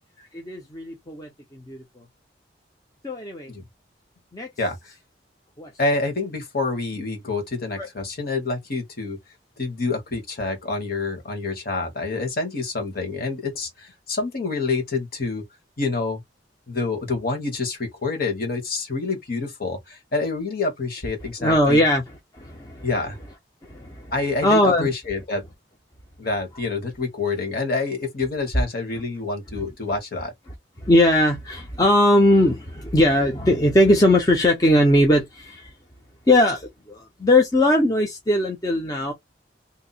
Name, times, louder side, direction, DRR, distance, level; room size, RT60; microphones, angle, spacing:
voice 1, 0.3-2.0 3.0-3.5 4.3-4.5 5.6-5.7 7.8-7.9 21.4-22.0 22.3-22.9 23.6-24.1 24.4-24.9 30.8-35.7 36.3-39.1, left 1 dB, 20° left, 0.6 m, -19 dB
voice 2, 4.6-4.9 5.8-9.2 9.6-15.4 15.8-16.2 16.7-21.8 22.8-23.2 24.1-25.4 26.2-30.3, left 3 dB, 50° left, 1.3 m, -27 dB
2.8 x 2.1 x 4.0 m
head